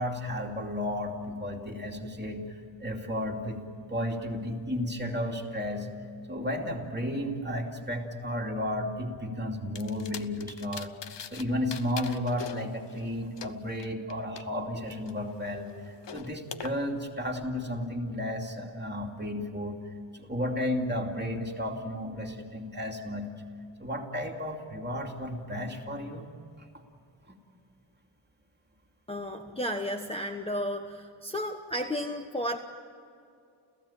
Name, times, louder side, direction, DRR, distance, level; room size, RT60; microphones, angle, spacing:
voice 1, 0.0-3.6 3.9-5.9 6.3-10.9 11.3-15.7 16.1-19.8 20.1-23.3 23.8-26.3, left 1 dB, 20° right, 1 dB, 2.7 m, -33 dB
sound 1, 9.8-11.4 11.7-14.4 14.9-16.7, left 7 dB, 60° left, 1.0 m, -43 dB
voice 2, 29.1-32.6, equal, 10° left, 4 dB, 1.1 m, -33 dB
30.0 x 15.5 x 8.9 m, 2.5 s
wide cardioid pair, 110°, 48 cm